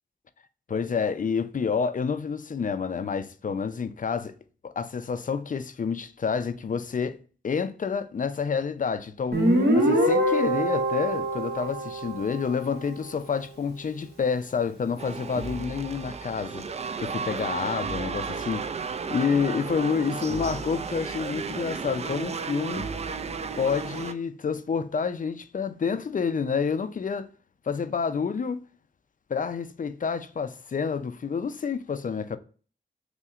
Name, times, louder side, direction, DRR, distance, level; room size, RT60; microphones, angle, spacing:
voice 1, 0.7-4.3 4.6-7.2 7.4-9.4 9.7-16.6 17.0-22.9 23.6-27.3 27.7-28.6 29.3-32.4, left 6 dB, 45° left, 0.4 m, -29 dB
Guitar, 9.3-12.8, right 1 dB, 55° right, 1.1 m, -24 dB
sound 1, 15.0-24.1, right 5 dB, 35° right, 0.4 m, -33 dB
5.6 x 2.1 x 2.4 m
cardioid pair, 50°, 20 cm